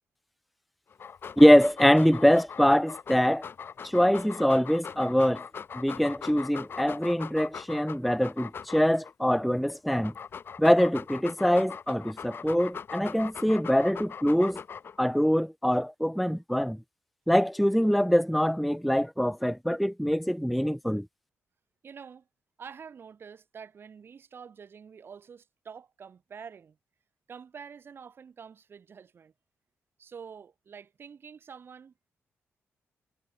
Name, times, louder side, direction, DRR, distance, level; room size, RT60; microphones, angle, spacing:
Dog, 0.9-9.1 9.7-15.1, left 6 dB, 50° left, 1.2 m, -41 dB
voice 1, 1.4-3.4 3.8-5.4 5.7-10.1 10.6-14.6 15.0-16.8 17.3-21.1, equal, ahead, 0.3 m, -23 dB
voice 2, 21.8-22.3 22.6-26.8 27.3-29.3 30.0-31.9, right 6 dB, 50° right, 4.1 m, -47 dB
cardioid pair, 105°, 5 cm